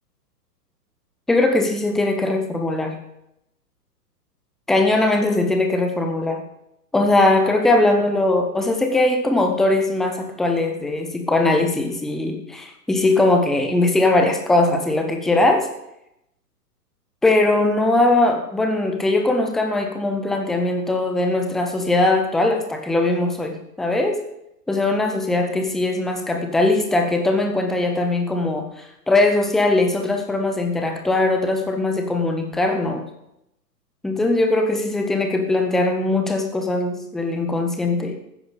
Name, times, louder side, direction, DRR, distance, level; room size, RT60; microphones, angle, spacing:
voice 1, 1.3-3.0 4.7-6.4 6.9-15.7 17.2-24.2 24.7-33.0 34.0-38.1, left 2 dB, ahead, 4 dB, 0.6 m, -20 dB
13.5 x 10.0 x 5.0 m, 0.81 s
figure-of-eight pair, 110°, 48 cm